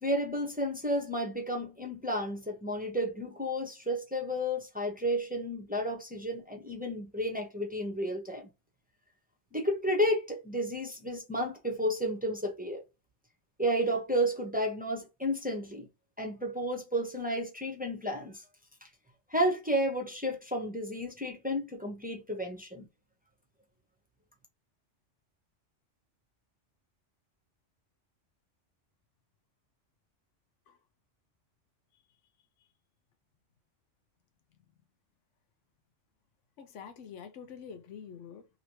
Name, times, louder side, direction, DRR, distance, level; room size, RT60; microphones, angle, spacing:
voice 1, 0.0-8.5 9.5-12.8 13.6-15.9 16.2-18.4 19.3-22.9, equal, 10° right, 0.6 m, -32 dB
voice 2, 36.6-38.5, left 7 dB, 85° left, 1.0 m, -46 dB
3.0 x 2.9 x 2.8 m
omnidirectional pair, 1.2 m